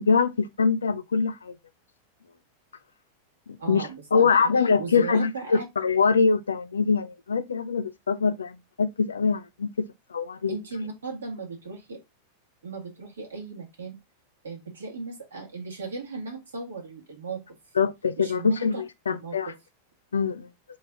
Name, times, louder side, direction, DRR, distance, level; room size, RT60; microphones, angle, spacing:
voice 1, 0.0-1.6 3.5-9.7 10.1-10.6 17.8-19.5 20.1-20.5, left 5 dB, 70° left, 0.4 m, -24 dB
voice 2, 3.6-4.3 4.8-5.6 10.5-12.0 12.6-14.0 14.4-17.6 18.2-18.8 19.1-19.6, right 4 dB, 70° right, 1.6 m, -37 dB
3.9 x 3.4 x 3.8 m
figure-of-eight pair, 90°, 0 cm